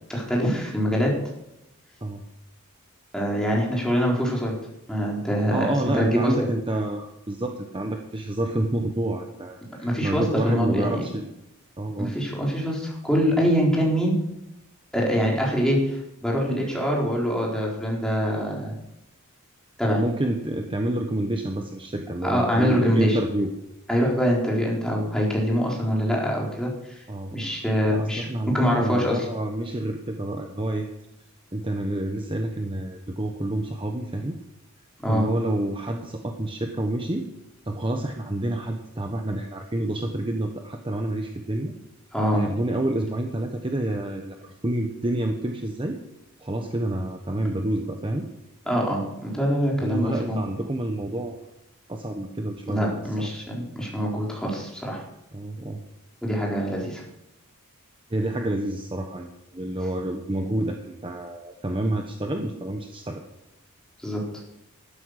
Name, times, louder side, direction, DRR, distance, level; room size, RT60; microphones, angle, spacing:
voice 1, 0.1-1.2 3.1-4.5 4.9-6.3 9.8-11.0 12.0-14.2 14.9-18.7 19.8-20.0 22.2-23.2 23.9-27.0 27.3-29.2 35.0-35.3 42.1-42.4 48.7-50.4 52.7-55.0 56.2-57.0 64.0-64.2, equal, 5° left, -3 dB, 4.1 m, -24 dB
voice 2, 5.5-11.3 11.8-12.1 19.9-23.5 27.1-27.5 27.9-30.9 31.5-34.4 35.1-37.3 37.7-41.7 42.3-46.0 46.4-48.3 49.8-51.4 51.9-53.3 55.3-55.8 58.1-63.2, right 1 dB, 25° right, 4 dB, 1.1 m, -28 dB
12.5 x 12.5 x 6.6 m, 0.87 s
head